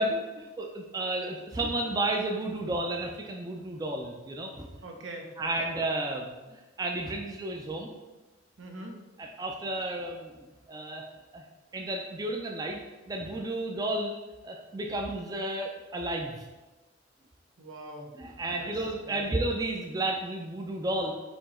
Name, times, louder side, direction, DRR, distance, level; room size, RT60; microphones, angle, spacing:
voice 1, 0.0-4.7 5.4-7.9 9.2-10.3 10.7-11.0 11.3-11.4 11.7-12.8 13.1-14.2 14.4-16.5 18.2-21.1, right 1 dB, 20° right, 1 dB, 0.3 m, -32 dB
voice 2, 4.8-5.7 8.6-9.0 17.6-18.2 18.4-19.3, right 1 dB, 85° right, 2 dB, 0.7 m, -43 dB
4.4 x 2.9 x 4.2 m, 1.2 s
head